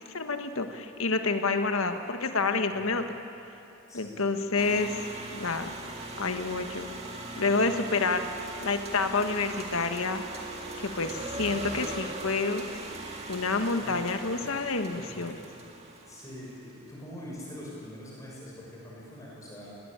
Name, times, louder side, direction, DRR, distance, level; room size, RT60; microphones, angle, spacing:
voice 1, 0.0-3.0 3.9-5.0 5.3-5.7 6.2-6.9 7.4-8.3 8.6-10.2 10.8-12.7 13.3-15.4, left 3 dB, 80° left, 7 dB, 1.4 m, -28 dB
voice 2, 2.7-3.0 3.9-4.3 13.8-14.0 14.9-15.2 16.0-19.7, left 1 dB, 15° left, -5 dB, 6.3 m, -44 dB
sound 1, 4.6-16.6, right 2 dB, 30° right, 2.0 m, -40 dB
20.0 x 20.0 x 8.9 m, 3.0 s
head